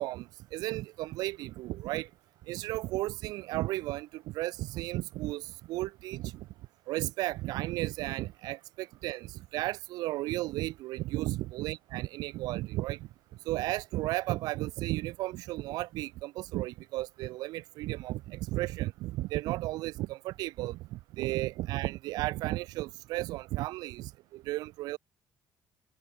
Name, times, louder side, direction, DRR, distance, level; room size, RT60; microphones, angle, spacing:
voice 1, 0.0-2.1 2.5-6.5 6.9-13.1 13.5-25.0, right 18 dB, 80° right, 7.5 m, -34 dB
supercardioid pair, 80°, 7 cm